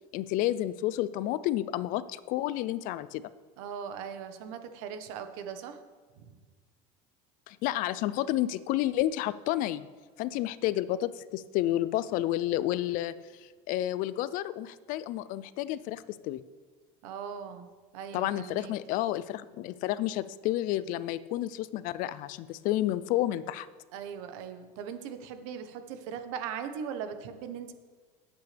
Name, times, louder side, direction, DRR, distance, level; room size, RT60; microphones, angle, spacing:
voice 1, 0.1-3.3 7.5-9.9 10.2-16.4 18.1-23.7, left 14 dB, 55° left, 16 dB, 0.5 m, -30 dB
voice 2, 3.6-5.8 6.2-6.4 17.0-17.7 17.9-18.7 23.9-27.7, right 7 dB, 80° right, 8 dB, 1.2 m, -39 dB
17.0 x 8.3 x 3.4 m, 1.4 s
cardioid pair, 150°, 17 cm